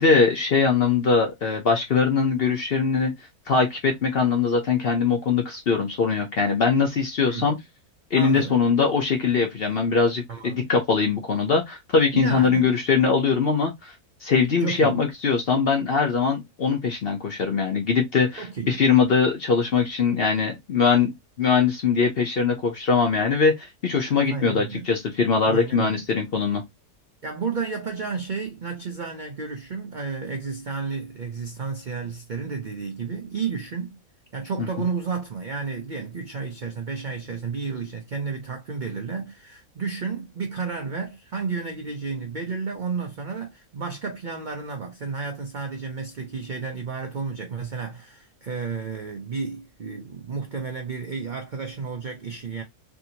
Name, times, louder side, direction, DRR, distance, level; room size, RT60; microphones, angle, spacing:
voice 1, 0.0-3.1 3.5-7.6 8.1-13.9 14.2-21.1 21.4-26.6 34.6-34.7, left 5 dB, 55° left, 0.7 m, -22 dB
voice 2, 8.1-8.6 10.3-10.7 12.1-12.7 14.6-15.0 18.4-18.8 24.3-24.9 25.5-26.0 27.2-34.0 34.3-52.6, right 5 dB, 65° right, 0.4 m, -32 dB
3.6 x 2.6 x 2.8 m
omnidirectional pair, 1.6 m